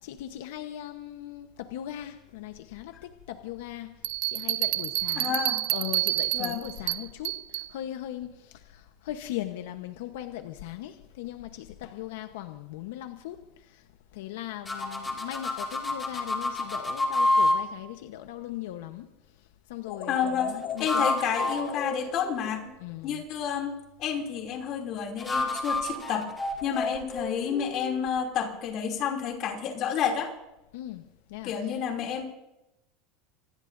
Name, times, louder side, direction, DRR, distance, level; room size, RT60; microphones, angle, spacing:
voice 1, 0.0-4.0 4.3-13.9 14.1-19.1 19.7-21.3 22.8-23.3 30.7-31.7, left 13 dB, 80° left, 7 dB, 1.1 m, -39 dB
Bell, 4.0-7.7, right 19 dB, 50° right, 0.4 m, -29 dB
voice 2, 5.2-5.6 6.3-6.6 20.1-20.5 20.8-22.6 23.0-26.3 26.6-30.3 31.4-32.3, left 7 dB, 35° left, 2 dB, 2.9 m, -30 dB
sound 1, 14.7-17.6 20.6-22.8 25.2-28.1, left 2 dB, 10° left, 2.4 m, -29 dB
sound 2, 19.8-23.0, left 9 dB, 55° left, 1.7 m, -39 dB
26.0 x 20.0 x 2.7 m, 0.93 s
supercardioid pair, 175°, 0 cm